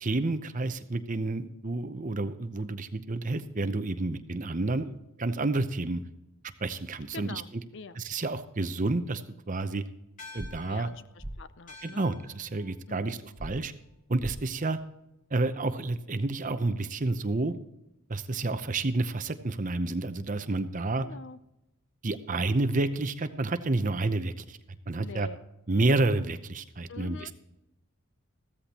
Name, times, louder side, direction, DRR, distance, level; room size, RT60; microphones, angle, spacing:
voice 1, 0.0-6.0 6.6-7.4 8.0-9.8 10.3-10.9 11.8-13.7 14.1-14.8 15.3-17.6 18.1-21.1 22.0-24.6 24.9-25.3 25.7-27.3, right 2 dB, 35° right, 11 dB, 0.7 m, -29 dB
voice 2, 7.1-8.0 10.6-12.1 12.9-13.2 21.0-21.4 25.0-25.4 26.9-27.3, left 4 dB, 55° left, 14 dB, 0.6 m, -44 dB
sound 1, 10.2-14.9, left 3 dB, 35° left, 2.2 m, -52 dB
sound 2, 10.4-10.5 11.2-11.3 13.4-13.5 14.2-14.3, right 1 dB, 10° right, 0.9 m, -37 dB
15.5 x 13.5 x 2.9 m, 0.90 s
head